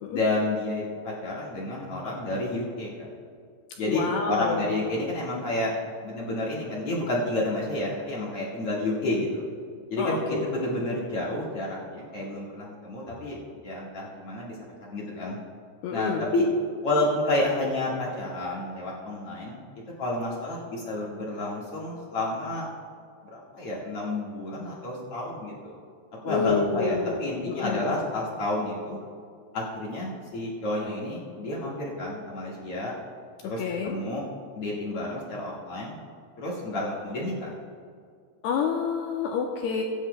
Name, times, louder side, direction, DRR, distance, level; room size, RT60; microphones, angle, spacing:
voice 1, 0.1-3.1 3.8-5.7 6.0-9.4 9.9-14.6 14.9-15.4 15.9-16.4 16.8-19.6 20.0-22.7 23.3-25.7 26.2-29.0 29.5-32.9 33.4-34.2 34.5-36.0 36.4-37.5, left 1 dB, 60° left, -6 dB, 1.5 m, -30 dB
voice 2, 3.8-4.6 10.0-10.5 15.8-16.3 26.3-27.2 27.5-28.0 33.6-33.9 38.4-39.8, left 6 dB, 85° left, 1 dB, 2.3 m, -28 dB
22.5 x 10.0 x 2.2 m, 2.2 s
omnidirectional pair, 5.4 m